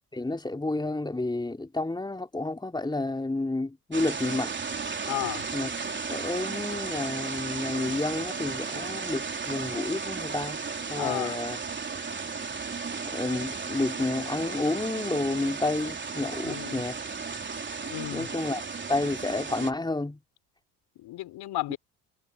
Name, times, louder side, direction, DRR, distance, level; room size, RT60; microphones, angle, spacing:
voice 1, 0.1-4.5 5.5-5.7 6.1-10.6 10.9-11.6 13.0-17.0 18.1-18.6 18.9-20.2 21.7-21.8, left 2 dB, 10° left, 3.2 m, -30 dB
sound 1, 3.9-19.7, right 5 dB, 25° right, 4.0 m, -34 dB
voice 2, 5.0-5.5 10.9-11.4 16.4-16.8 17.9-18.3 21.0-21.8, left 17 dB, 55° left, 3.6 m, -33 dB
hypercardioid pair, 65°, 45 cm